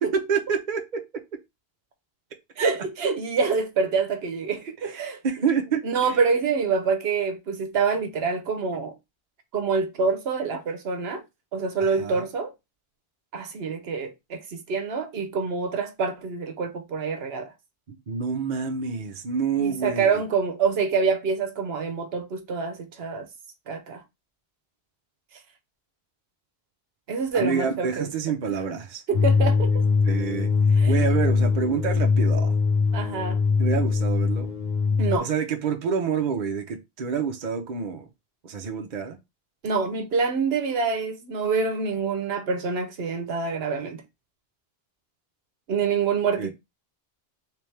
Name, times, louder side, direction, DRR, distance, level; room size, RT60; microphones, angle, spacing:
voice 1, 0.0-1.0 4.8-5.8 11.8-12.2 17.9-20.1 27.3-29.0 30.0-30.5 30.9-32.6 33.6-34.5 35.2-38.1 38.4-39.2 46.4-46.5, right 6 dB, 50° right, 0.8 m, -27 dB
voice 2, 2.6-5.2 5.8-8.9 9.5-11.2 11.5-12.5 13.3-17.5 19.6-23.3 23.7-24.0 27.1-28.1 28.5-28.6 29.1-29.7 30.8-30.9 32.9-33.4 35.0-35.3 39.6-44.0 45.7-46.5, right 5 dB, 75° right, 1.0 m, -26 dB
sound 1, 29.1-35.2, left 4 dB, 45° left, 1.1 m, -22 dB
3.4 x 3.4 x 3.2 m
omnidirectional pair, 1.1 m